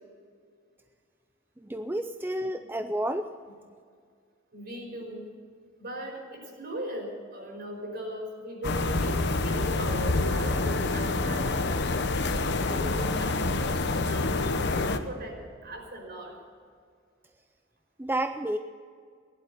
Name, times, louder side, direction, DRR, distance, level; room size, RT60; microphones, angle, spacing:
voice 1, 1.6-3.3 18.0-18.6, right 1 dB, 10° right, 8 dB, 0.5 m, -30 dB
voice 2, 2.4-2.7 4.5-5.3 5.8-12.0 12.5-16.4, right 1 dB, 55° right, 1 dB, 5.3 m, -39 dB
sound 1, 8.6-15.0, left 3 dB, 60° left, 1.0 m, -27 dB
17.0 x 11.5 x 6.9 m, 2.1 s
head